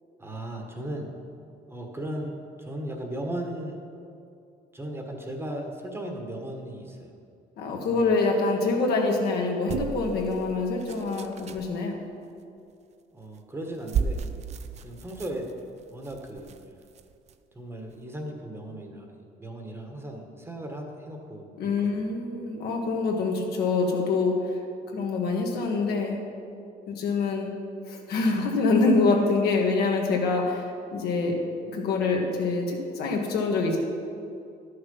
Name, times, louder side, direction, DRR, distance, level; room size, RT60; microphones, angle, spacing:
voice 1, 0.2-1.1 1.7-3.8 4.7-7.1 7.9-8.1 13.1-14.2 14.8-15.5 15.9-16.5 17.5-22.1, right 1 dB, 15° right, 2 dB, 1.3 m, -37 dB
voice 2, 7.6-12.0 21.6-24.6 24.9-26.2 26.9-27.5 27.8-31.4 31.7-33.8, left 3 dB, 70° left, 0 dB, 1.6 m, -25 dB
sound 1, 9.7-11.7 13.2-13.4 13.7-17.3 17.9-18.0, right 6 dB, 40° right, 0.5 m, -34 dB
11.0 x 6.6 x 5.5 m, 2.5 s
cardioid pair, 110°, 17 cm